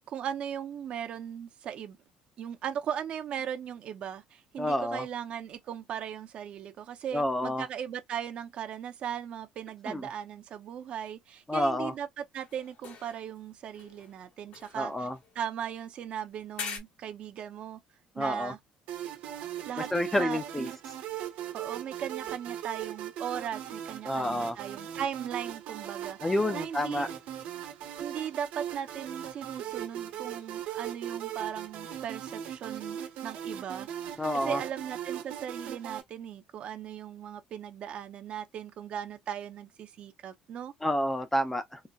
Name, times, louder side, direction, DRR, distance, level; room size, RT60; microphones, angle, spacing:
voice 1, 0.1-2.0 2.4-15.1 15.4-17.8 18.2-18.6 19.7-19.9 20.2-20.7 21.5-26.2 26.5-27.1 28.0-40.7, right 9 dB, 50° right, 0.6 m, -38 dB
voice 2, 4.6-5.0 7.1-7.6 9.9-10.1 11.5-11.9 14.7-15.2 18.2-18.5 19.9-20.7 24.0-24.6 26.2-27.1 34.2-34.6 40.8-41.8, left 1 dB, 10° left, 0.5 m, -29 dB
sound 1, 12.3-13.5 13.7-15.8 16.5-16.8, left 6 dB, 60° left, 1.4 m, -44 dB
sound 2, 18.9-36.0, right 10 dB, 75° right, 1.1 m, -39 dB
3.9 x 2.1 x 2.2 m
cardioid pair, 140°, 3 cm